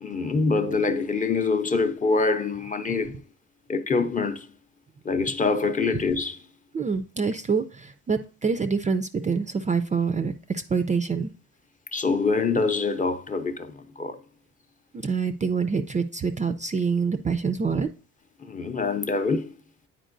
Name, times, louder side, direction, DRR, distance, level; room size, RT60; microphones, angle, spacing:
voice 1, 0.0-3.2 3.7-4.5 5.0-6.4 11.9-14.2 18.4-19.5, left 4 dB, 25° left, 0.6 m, -25 dB
voice 2, 6.7-11.3 15.0-17.9, right 5 dB, 25° right, 0.4 m, -26 dB
9.0 x 4.4 x 2.5 m
cardioid pair, 90°, 30 cm